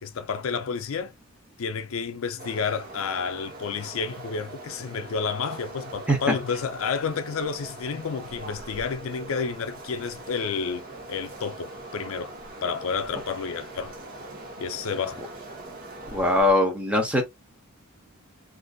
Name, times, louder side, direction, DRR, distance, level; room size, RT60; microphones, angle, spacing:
voice 1, 0.0-1.1 1.6-10.8 11.1-12.3 12.6-14.0 14.6-15.2, left 5 dB, 70° left, 0.4 m, -30 dB
sound 1, 2.4-16.5, right 2 dB, 40° right, 0.9 m, -42 dB
voice 2, 16.1-17.2, left 1 dB, 5° right, 0.8 m, -21 dB
3.8 x 2.5 x 2.3 m
head